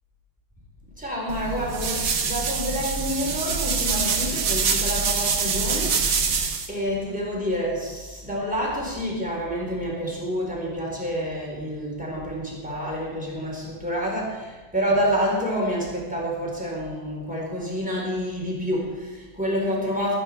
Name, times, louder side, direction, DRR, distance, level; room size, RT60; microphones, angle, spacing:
voice 1, 1.0-5.9 6.7-20.2, equal, 5° right, -3 dB, 4.1 m, -28 dB
sound 1, 1.3-6.7, right 5 dB, 55° right, 1.7 m, -25 dB
21.0 x 9.6 x 4.7 m, 1.3 s
omnidirectional pair, 2.3 m